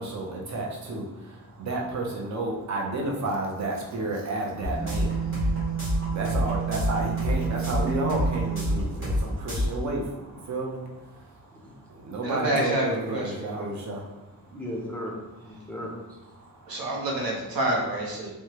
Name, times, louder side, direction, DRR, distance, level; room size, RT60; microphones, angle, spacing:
voice 1, 0.0-14.5 16.4-16.9, right 2 dB, 50° right, 0 dB, 0.6 m, -32 dB
sound 1, 4.6-9.2 9.5-9.7, right 2 dB, 35° right, 1.1 m, -27 dB
voice 2, 12.2-13.7 16.7-18.3, right 1 dB, 80° right, -2 dB, 0.8 m, -28 dB
voice 3, 14.4-16.2, left 1 dB, 5° left, -4 dB, 0.4 m, -37 dB
3.2 x 2.1 x 2.8 m, 1.0 s
wide cardioid pair, 175°, 36 cm